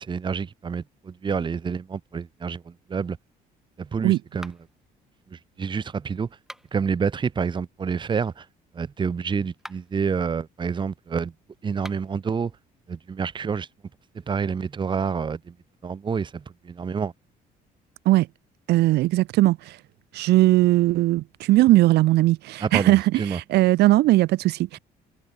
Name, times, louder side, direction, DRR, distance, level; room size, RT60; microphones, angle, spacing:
voice 1, 0.1-2.6 2.9-3.2 3.9-4.5 5.6-6.3 6.7-8.3 8.8-11.3 11.6-12.5 12.9-13.7 14.3-15.4 15.8-16.3 16.7-17.1 22.6-22.9 23.2-23.4, right 6 dB, 30° right, 1.1 m, -27 dB
sound 1, 4.4-4.9 6.3-6.9 9.5-10.0 11.7-12.2, equal, ahead, 4.0 m, -44 dB
voice 2, 18.7-19.8 20.1-24.8, right 17 dB, 80° right, 1.2 m, -19 dB
cardioid pair, 110°, 17 cm